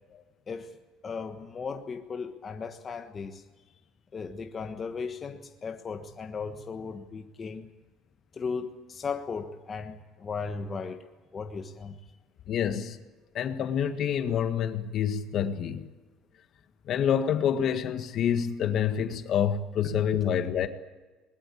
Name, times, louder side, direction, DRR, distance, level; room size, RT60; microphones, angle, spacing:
voice 1, 0.5-3.4 4.1-7.7 8.3-12.0, left 5 dB, 30° left, 1.4 m, -36 dB
voice 2, 12.5-13.0 13.3-15.9 16.9-20.7, left 8 dB, 50° left, 1.7 m, -27 dB
21.5 x 21.0 x 8.5 m
cardioid pair, 125°, 0 cm